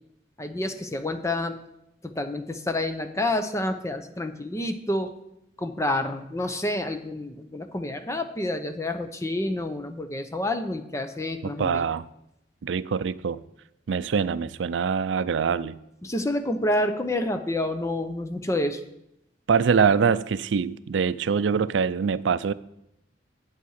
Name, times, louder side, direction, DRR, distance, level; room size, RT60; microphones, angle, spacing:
voice 1, 0.4-1.6 2.0-5.1 5.6-11.8 16.0-18.8, left 1 dB, 15° left, 7 dB, 0.7 m, -28 dB
voice 2, 11.4-12.1 12.6-13.4 13.9-15.8 19.5-22.5, right 6 dB, 85° right, 16 dB, 0.4 m, -24 dB
8.4 x 8.0 x 6.5 m, 0.82 s
head